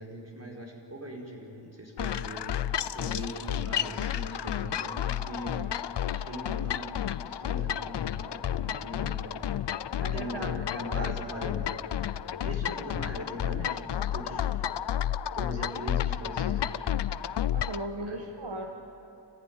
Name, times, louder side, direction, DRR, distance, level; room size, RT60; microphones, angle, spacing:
voice 1, 0.0-2.5 2.9-5.6 6.1-9.5 10.1-11.8 12.4-14.5 15.3-16.9 18.0-18.3, equal, 35° right, -1 dB, 5.0 m, -40 dB
sound 1, 2.0-17.9, left 10 dB, 70° left, 0.6 m, -31 dB
voice 2, 10.0-11.4 17.5-18.7, right 1 dB, 65° right, 2 dB, 1.6 m, -38 dB
28.5 x 15.0 x 9.5 m, 2.8 s
wide cardioid pair, 70°, 44 cm